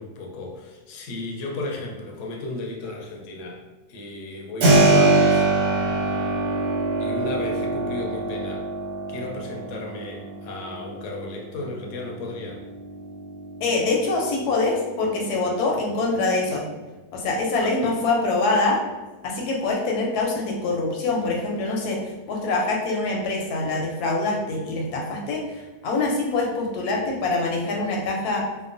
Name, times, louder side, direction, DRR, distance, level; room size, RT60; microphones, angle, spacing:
voice 1, 0.0-3.6 3.9-5.6 7.0-8.7 9.1-12.6 17.6-18.0, left 2 dB, 65° left, 0 dB, 0.8 m, -34 dB
Keyboard (musical), 4.6-15.3, right 2 dB, 85° right, 1.3 m, -24 dB
voice 2, 13.6-16.6 17.1-18.8 19.2-28.5, left 3 dB, 85° left, -1 dB, 1.1 m, -24 dB
2.9 x 2.1 x 2.4 m, 1.1 s
omnidirectional pair, 1.6 m